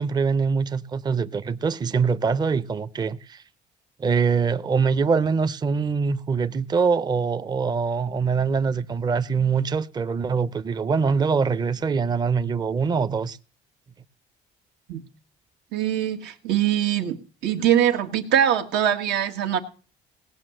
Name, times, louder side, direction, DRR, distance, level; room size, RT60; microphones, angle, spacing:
voice 1, 0.0-3.4 4.0-13.4, right 5 dB, 25° right, 0.6 m, -23 dB
voice 2, 15.7-17.2 17.4-19.6, right 10 dB, 85° right, 1.6 m, -22 dB
17.5 x 6.0 x 7.7 m
cardioid pair, 110°, 17 cm